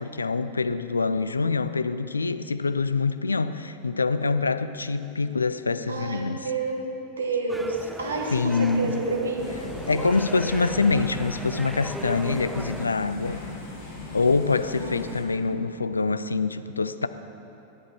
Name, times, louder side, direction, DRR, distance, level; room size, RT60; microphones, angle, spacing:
voice 1, 0.0-6.5 8.3-8.9 9.9-13.4 14.1-17.1, left 4 dB, 75° left, 12 dB, 0.3 m, -25 dB
voice 2, 5.9-9.5 14.5-15.0, right 3 dB, 70° right, 1 dB, 1.4 m, -30 dB
sound 1, 7.5-12.9, right 1 dB, 5° right, 0.4 m, -38 dB
sound 2, 9.4-15.2, left 3 dB, 50° left, 2.5 m, -39 dB
11.0 x 9.9 x 4.5 m, 2.8 s
figure-of-eight pair, 90°, 0 cm